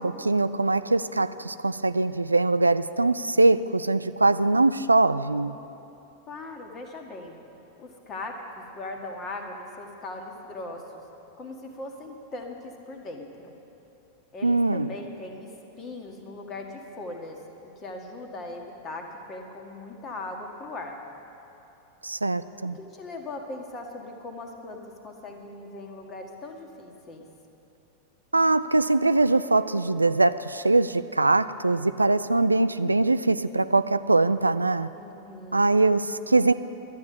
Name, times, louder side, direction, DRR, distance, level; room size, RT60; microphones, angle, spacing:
voice 1, 0.0-5.6 14.4-14.9 22.0-22.8 28.3-34.9 35.5-36.5, right 2 dB, 80° right, 14 dB, 0.3 m, -22 dB
voice 2, 6.3-7.4 7.8-11.0 11.4-13.5 14.3-15.5 15.8-17.4 17.7-21.0 22.6-27.3 35.0-35.7, left 2 dB, 30° left, 3 dB, 1.7 m, -39 dB
12.5 x 9.4 x 8.6 m, 3.0 s
figure-of-eight pair, 90°, 0 cm